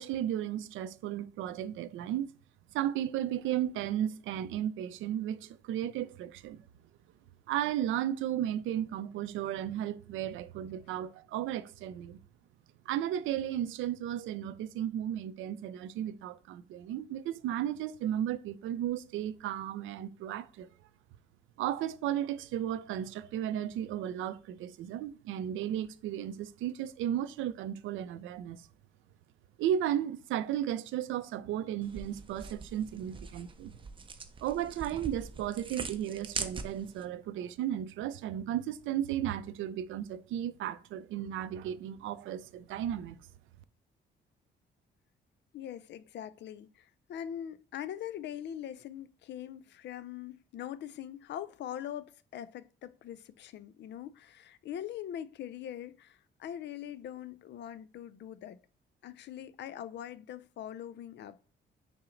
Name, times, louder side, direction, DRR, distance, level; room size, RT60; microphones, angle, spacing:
voice 1, 0.0-2.3 2.7-6.6 7.5-12.2 12.9-20.7 21.6-28.7 29.6-33.7 34.4-43.2, right 11 dB, 80° right, 0.4 m, -34 dB
sound 1, 31.8-37.0, right 4 dB, 25° right, 0.5 m, -42 dB
voice 2, 45.5-58.6 59.0-61.4, left 10 dB, 60° left, 0.4 m, -42 dB
5.6 x 2.0 x 3.8 m
cardioid pair, 90°, 20 cm